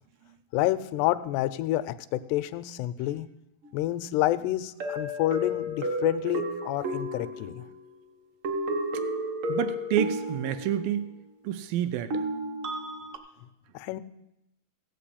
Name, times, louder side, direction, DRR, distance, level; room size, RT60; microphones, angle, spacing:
voice 1, 0.5-3.3 3.7-7.6 13.7-14.0, left 15 dB, 90° left, 14 dB, 2.7 m, -28 dB
sound 1, 3.6-3.7 4.8-7.9 8.4-11.0 12.1-13.2, equal, 70° right, 1.2 m, -32 dB
voice 2, 9.5-11.1 11.4-12.1, right 10 dB, 85° right, 10 dB, 2.0 m, -28 dB
15.5 x 6.0 x 8.4 m, 0.85 s
omnidirectional pair, 4.6 m